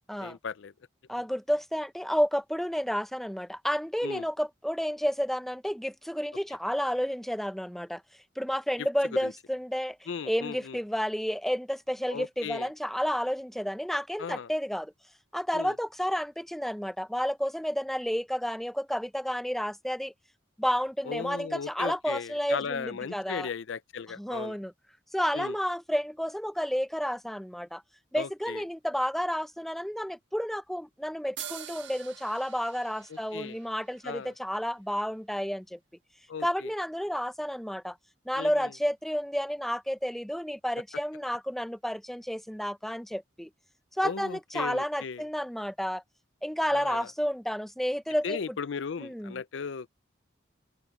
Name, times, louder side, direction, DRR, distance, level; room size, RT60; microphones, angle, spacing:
voice 1, 0.2-0.7 4.0-4.3 8.8-8.9 9.1-9.3 10.1-10.8 12.1-12.7 14.2-14.5 15.5-15.8 21.0-24.6 25.3-25.6 28.1-28.6 33.1-33.6 34.0-34.3 36.3-36.7 38.4-38.7 44.0-45.2 46.7-47.1 48.2-49.9, left 6 dB, 75° left, 0.5 m, -37 dB
voice 2, 1.1-8.0 8.4-10.0 10.3-14.9 15.3-20.1 20.6-23.5 24.2-24.7 25.1-27.8 28.1-35.8 36.4-38.0 38.3-43.5 44.0-46.0 46.4-48.4 49.0-49.3, equal, ahead, 0.5 m, -31 dB
sound 1, 31.4-34.9, right 10 dB, 70° right, 1.4 m, -45 dB
head